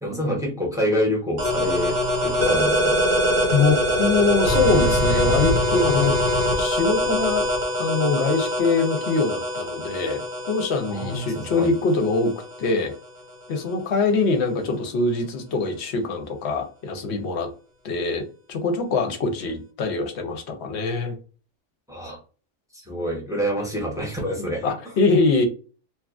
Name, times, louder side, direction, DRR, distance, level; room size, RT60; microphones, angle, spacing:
voice 1, 0.0-3.0 10.9-11.7 21.9-22.2 22.7-24.6, equal, 5° right, -1 dB, 0.7 m, -27 dB
sound 1, 1.4-12.8, equal, 85° right, 1.4 m, -23 dB
voice 2, 3.5-6.1 6.6-7.5 7.8-12.3 12.6-12.9 13.5-17.5 17.8-18.2 18.5-21.2 24.4-25.4, left 3 dB, 65° left, 5 dB, 0.8 m, -23 dB
2.9 x 2.3 x 2.4 m, 0.37 s
omnidirectional pair, 1.4 m